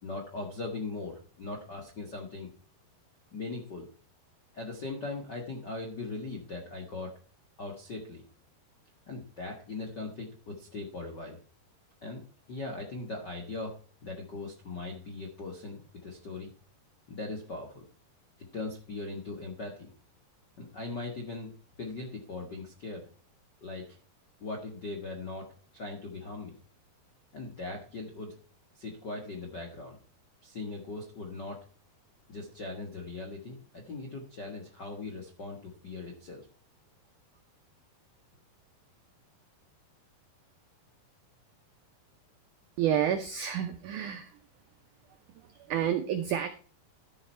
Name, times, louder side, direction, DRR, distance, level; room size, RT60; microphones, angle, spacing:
voice 1, 0.0-2.5 3.3-3.9 4.5-7.1 7.6-8.2 9.1-11.4 12.0-12.2 12.5-13.7 14.0-16.5 17.1-17.8 18.5-19.9 20.6-21.5 21.8-23.1 23.6-24.0 24.4-25.5 25.7-26.5 27.3-28.3 28.7-30.0 30.4-31.6 32.3-36.5, left 3 dB, 65° left, 0 dB, 1.0 m, -39 dB
voice 2, 42.8-44.4 45.3-46.5, right 9 dB, 90° right, 7 dB, 1.7 m, -30 dB
12.5 x 7.2 x 4.5 m, 0.41 s
omnidirectional pair, 4.7 m